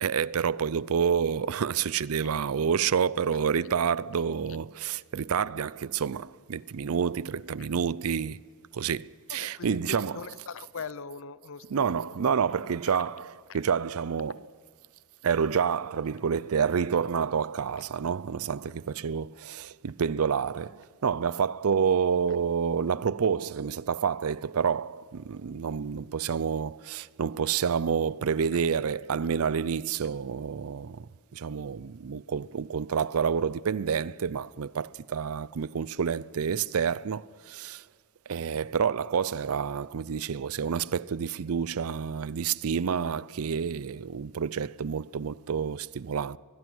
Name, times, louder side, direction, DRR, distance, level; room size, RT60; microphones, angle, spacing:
voice 1, 0.0-8.4 8.7-10.2 11.7-14.5 15.2-37.8 38.3-46.4, right 6 dB, 75° right, 0.5 m, -28 dB
voice 2, 9.3-12.2 13.5-13.6, left 5 dB, 65° left, 0.7 m, -41 dB
24.0 x 20.5 x 6.2 m
head